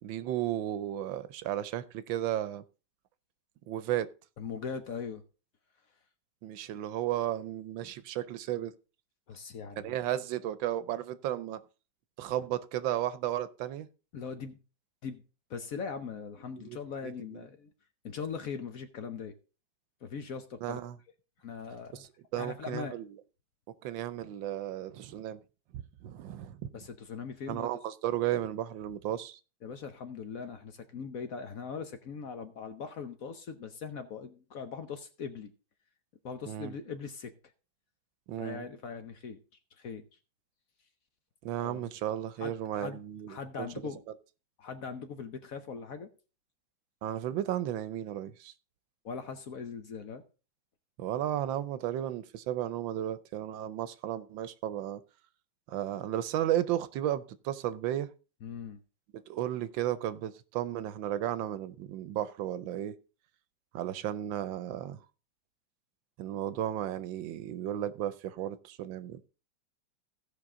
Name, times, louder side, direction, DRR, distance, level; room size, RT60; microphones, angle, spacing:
voice 1, 0.0-2.6 3.7-4.1 6.4-8.7 9.8-11.6 12.2-13.9 16.6-16.8 17.0-17.4 20.6-21.0 21.9-23.1 23.8-25.4 25.7-26.7 27.5-29.4 36.5-36.7 38.3-38.7 41.4-43.7 47.0-48.5 51.0-55.0 55.7-58.1 59.3-62.9 63.7-65.0 66.2-69.3, right 12 dB, 80° right, 1.4 m, -34 dB
voice 2, 4.4-5.2 9.3-9.9 14.1-14.6 15.0-15.2 15.5-17.7 18.0-19.4 20.0-20.8 21.4-22.1 22.4-23.0 26.7-27.7 29.6-35.5 36.2-37.3 38.4-39.4 39.8-40.0 41.6-41.9 42.4-43.0 43.3-44.0 44.6-46.1 49.0-50.2 58.4-58.8, left 6 dB, 55° left, 1.1 m, -40 dB
16.5 x 5.8 x 3.7 m
omnidirectional pair, 2.1 m